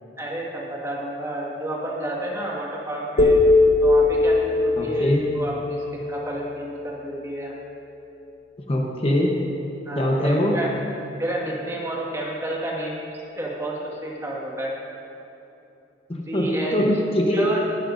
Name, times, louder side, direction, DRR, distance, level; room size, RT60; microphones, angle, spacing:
voice 1, 0.2-3.4 3.8-7.5 9.9-10.7 11.2-13.1 13.3-14.7 16.3-16.8 17.3-17.6, right 1 dB, 15° right, -4 dB, 1.8 m, -30 dB
sound 1, 3.2-7.3, left 2 dB, 65° left, 1.3 m, -20 dB
voice 2, 4.8-5.2 8.7-9.4 9.9-10.6 16.1-17.5, left 1 dB, 35° left, -1 dB, 1.0 m, -22 dB
18.5 x 12.5 x 2.7 m, 2.8 s
head